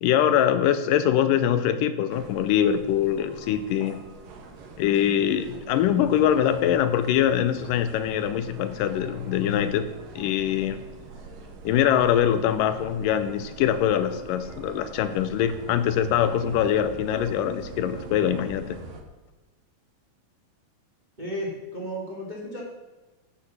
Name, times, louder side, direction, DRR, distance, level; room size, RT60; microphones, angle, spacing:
voice 1, 0.0-4.0 4.8-9.9 10.2-10.8 11.7-18.8, left 10 dB, 85° left, 11 dB, 2.3 m, -23 dB
sound 1, 2.1-19.0, right 3 dB, 80° right, 3.0 m, -44 dB
voice 2, 21.2-22.6, equal, 20° right, -2 dB, 1.3 m, -33 dB
10.0 x 8.2 x 7.3 m, 1.2 s
omnidirectional pair, 3.9 m